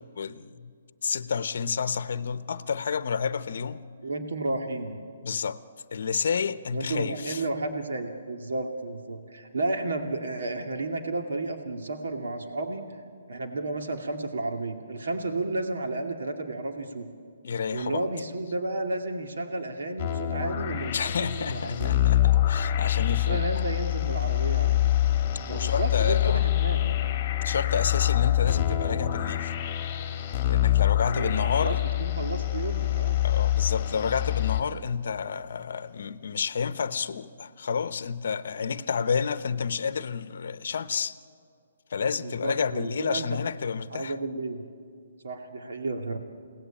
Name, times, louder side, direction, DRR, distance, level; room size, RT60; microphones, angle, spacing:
voice 1, 0.2-0.7 1.0-3.8 5.2-5.6 5.9-7.4 17.4-18.0 20.9-23.4 25.5-26.4 27.4-29.5 30.4-31.8 33.2-41.1 41.9-44.1, left 6 dB, 50° left, 0.9 m, -30 dB
voice 2, 4.0-5.0 6.7-13.0 13.3-17.1 17.7-21.9 22.7-22.9 23.3-24.9 25.5-27.0 31.1-33.2 42.2-43.2 43.9-44.6 45.2-46.2, right 2 dB, 75° right, 2.4 m, -32 dB
sound 1, 20.0-34.6, left 13 dB, 20° left, 1.8 m, -25 dB
29.5 x 18.5 x 8.9 m
hypercardioid pair, 175°, 0 cm